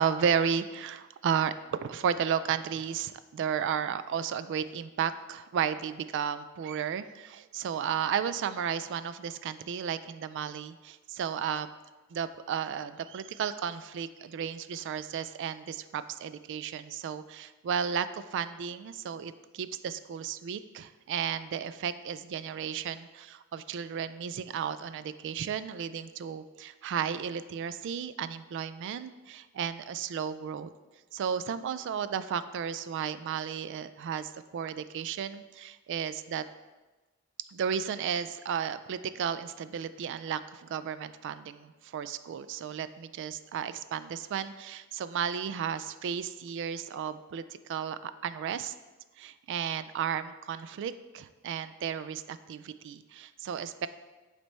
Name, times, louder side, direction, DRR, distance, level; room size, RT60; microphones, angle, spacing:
voice 1, 0.0-11.7 12.1-30.7 31.1-36.4 37.5-48.7 49.2-53.9, right 7 dB, 60° right, 13 dB, 0.3 m, -33 dB
7.9 x 3.3 x 4.2 m, 1.2 s
head